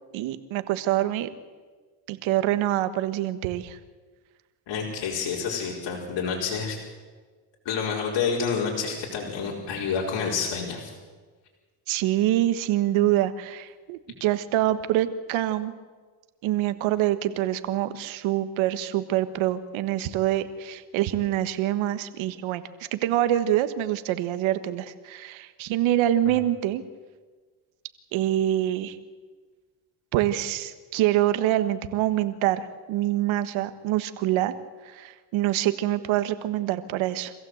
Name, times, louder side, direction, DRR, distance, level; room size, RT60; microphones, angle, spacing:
voice 1, 0.1-1.3 2.1-3.8 11.9-15.7 16.4-22.6 22.9-26.8 28.1-29.0 30.1-34.5 34.8-37.3, right 13 dB, 80° right, 11 dB, 1.5 m, -25 dB
voice 2, 4.7-6.8 7.6-10.9, left 6 dB, 65° left, -2 dB, 4.7 m, -28 dB
25.0 x 15.5 x 7.9 m, 1.4 s
supercardioid pair, 85°, 46 cm